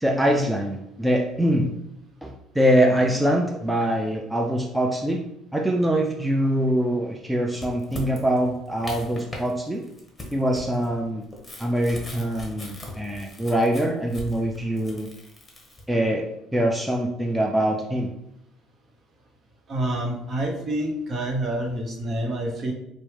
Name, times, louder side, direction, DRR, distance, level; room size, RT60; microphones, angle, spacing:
voice 1, 0.0-1.7 2.2-5.2 5.5-9.8 10.3-11.2 11.6-15.1 15.9-16.2 16.5-18.1, right 1 dB, 5° right, 1 dB, 0.4 m, -23 dB
sound 1, 7.5-9.5 9.8-15.8, left 1 dB, 15° left, 1.1 m, -39 dB
voice 2, 19.7-22.7, right 1 dB, 45° right, 1 dB, 0.9 m, -27 dB
4.4 x 2.1 x 3.2 m, 0.83 s
supercardioid pair, 70°, 0 cm